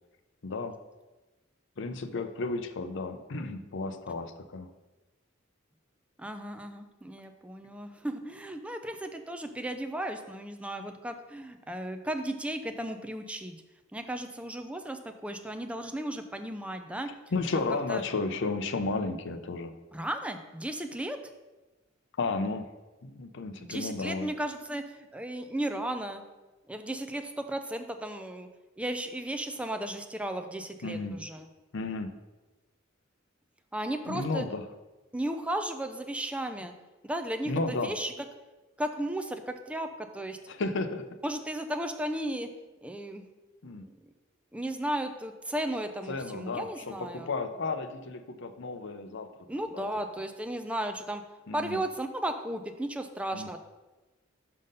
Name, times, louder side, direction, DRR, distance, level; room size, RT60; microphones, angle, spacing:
voice 1, 0.4-0.7 1.8-4.7 17.3-19.8 22.2-22.7 23.0-24.3 30.8-31.2 31.7-32.1 34.1-34.6 37.5-37.9 40.5-41.0 43.6-43.8 46.1-49.3 49.7-49.9 51.5-51.8 53.3-53.5, left 3 dB, 65° left, 9 dB, 0.6 m, -33 dB
voice 2, 6.2-13.6 13.9-17.1 17.5-18.0 19.9-21.2 23.6-26.2 26.7-28.5 28.8-31.5 33.7-34.5 35.1-36.7 37.0-38.1 38.8-40.4 41.2-42.5 42.8-43.2 43.6-43.9 44.5-47.3 49.5-51.2 51.5-53.6, right 1 dB, 5° right, 6 dB, 0.4 m, -35 dB
5.6 x 5.4 x 5.2 m, 1.1 s
head